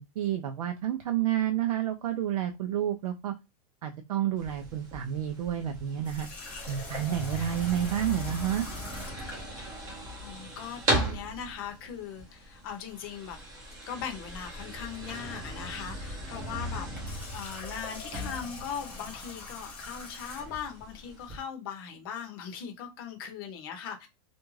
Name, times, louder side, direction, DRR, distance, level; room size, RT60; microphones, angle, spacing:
voice 1, 0.0-3.3 3.8-6.3 6.7-8.7, right 11 dB, 70° right, 0.5 m, -30 dB
sound 1, 4.4-21.4, right 1 dB, 15° right, 0.7 m, -38 dB
Water tap faucet, 6.0-9.4 16.8-20.7, left 3 dB, 5° left, 0.4 m, -43 dB
voice 2, 10.2-13.4 13.9-24.1, left 7 dB, 40° left, 0.7 m, -39 dB
2.5 x 2.2 x 3.1 m
supercardioid pair, 175°, 20 cm